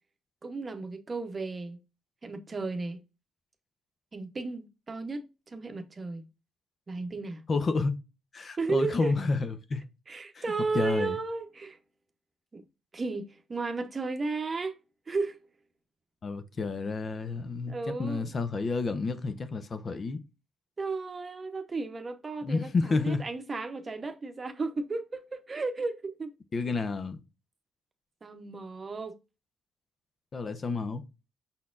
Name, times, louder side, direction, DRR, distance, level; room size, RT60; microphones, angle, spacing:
voice 1, 0.4-1.8 2.2-3.0 4.1-6.2 6.9-7.4 8.6-9.1 10.1-11.8 12.5-12.6 12.9-14.8 15.1-15.5 17.7-18.3 20.8-26.3 28.2-29.2, right 3 dB, 30° right, 0.8 m, -34 dB
voice 2, 7.5-7.9 8.3-9.8 10.3-10.4 10.7-11.2 16.2-20.2 22.4-23.2 26.5-27.2 30.3-31.0, left 3 dB, 40° left, 0.6 m, -30 dB
5.4 x 4.1 x 2.4 m
cardioid pair, 90°, 0 cm